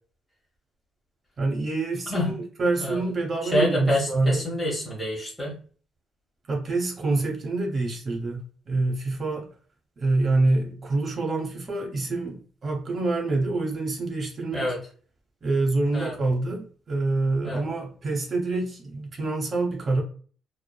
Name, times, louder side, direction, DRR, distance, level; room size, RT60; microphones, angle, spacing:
voice 1, 1.4-4.5 6.5-9.5 10.0-14.7 15.4-20.0, right 2 dB, 45° right, 0.8 m, -26 dB
voice 2, 3.4-5.6 14.5-14.8 15.9-16.2 17.4-17.6, left 1 dB, 5° left, 0.9 m, -27 dB
3.1 x 2.0 x 2.2 m
cardioid pair, 90°, 0 cm